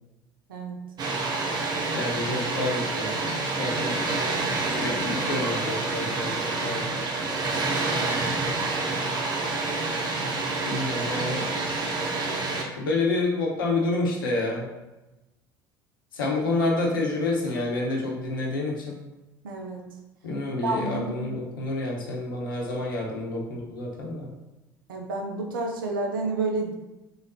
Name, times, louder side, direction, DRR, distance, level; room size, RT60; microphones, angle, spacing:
Water, 1.0-12.6, right 3 dB, 35° right, 0.7 m, -28 dB
voice 1, 1.9-3.2 3.6-4.1 4.8-7.1 10.7-11.5 12.7-14.7 16.1-19.0 20.2-24.3, left 2 dB, 75° left, -1 dB, 0.8 m, -28 dB
voice 2, 19.4-19.8 20.6-21.3 24.9-26.7, right 3 dB, 75° right, 2 dB, 0.6 m, -30 dB
3.8 x 3.5 x 2.7 m, 1.0 s
figure-of-eight pair, 65°, 11 cm